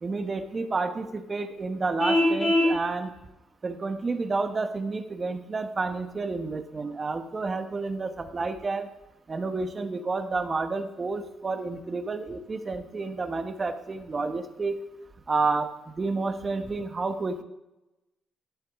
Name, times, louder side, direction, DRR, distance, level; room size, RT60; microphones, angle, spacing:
voice 1, 0.0-3.1 3.6-8.9 9.3-14.8 15.3-17.4, right 3 dB, 30° right, 7 dB, 1.2 m, -30 dB
Vehicle horn car horn honking, 2.0-2.8, left 1 dB, 30° left, 2.8 m, -22 dB
12.0 x 11.5 x 3.7 m, 0.96 s
cardioid pair, 90°, 0 cm